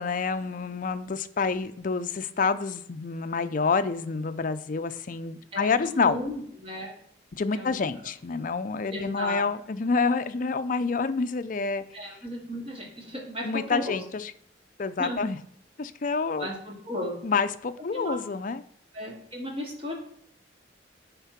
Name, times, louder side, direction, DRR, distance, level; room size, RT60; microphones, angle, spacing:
voice 1, 0.0-6.2 7.3-11.8 13.4-14.3 14.8-15.4 15.8-16.5 17.2-18.6, left 4 dB, 45° left, 11 dB, 0.5 m, -28 dB
voice 2, 5.5-6.9 7.5-8.1 8.9-9.4 11.9-14.0 15.0-15.2 16.4-17.1 17.9-18.2 18.9-19.9, equal, 30° right, -2 dB, 2.3 m, -35 dB
9.5 x 3.6 x 5.8 m, 0.68 s
head